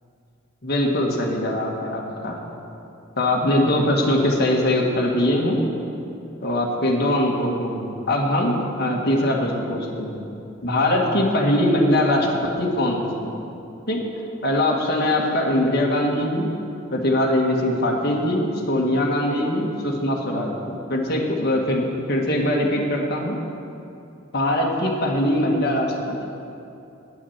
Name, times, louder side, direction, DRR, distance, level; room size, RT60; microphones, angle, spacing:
voice 1, 0.6-2.4 3.2-5.6 6.4-10.2 10.6-13.4 13.9-14.0 14.4-16.5 16.9-23.4 24.3-26.2, left 1 dB, 50° left, -1 dB, 1.6 m, -22 dB
9.5 x 8.5 x 7.2 m, 2.7 s
head